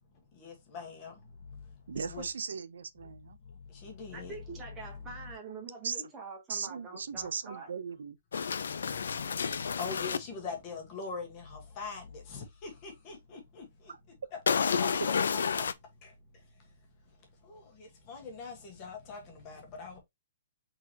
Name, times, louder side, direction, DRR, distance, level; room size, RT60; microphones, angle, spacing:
voice 1, 0.4-1.1 1.9-2.3 3.7-4.3 9.8-13.6 14.5-14.9 15.5-15.6 16.0-16.1 17.5-20.0, left 5 dB, 20° left, 1.4 m, -42 dB
voice 2, 1.9-3.4 5.8-6.0 6.5-8.2, right 6 dB, 85° right, 0.5 m, -38 dB
voice 3, 4.1-7.7, right 4 dB, 10° right, 1.3 m, -45 dB
sound 1, 8.3-10.2 14.5-15.7, left 6 dB, 80° left, 0.5 m, -30 dB
4.6 x 3.9 x 2.9 m
hypercardioid pair, 180°, 0 cm